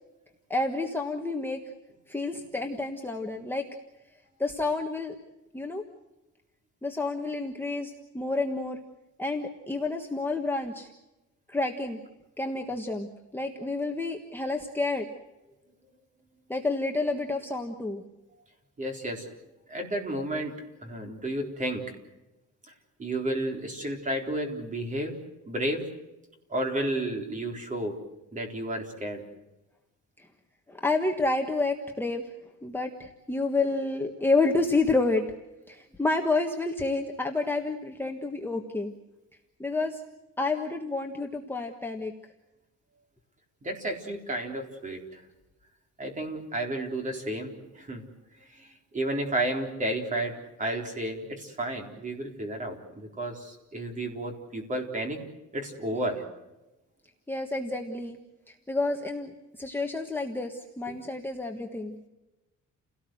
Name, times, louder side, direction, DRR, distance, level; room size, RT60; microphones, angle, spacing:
voice 1, 0.5-1.6 2.1-3.7 4.4-5.1 5.5-5.8 6.8-8.8 9.2-10.9 11.5-12.0 12.4-13.1 13.3-15.0 16.5-18.0 30.2-30.3 30.7-32.2 32.6-35.2 35.7-38.9 39.6-40.0 40.4-42.1 57.3-58.2 58.5-61.9, left 3 dB, 5° left, 1 dB, 1.4 m, -29 dB
voice 2, 18.8-19.3 19.7-20.6 20.8-21.8 23.0-25.2 25.5-25.8 26.5-28.0 28.3-29.2 43.6-45.2 46.0-48.1 48.4-55.2 55.5-56.2 60.9-61.0, right 1 dB, 25° right, 3 dB, 4.1 m, -32 dB
29.5 x 18.0 x 7.9 m, 1.0 s
cardioid pair, 170°, 31 cm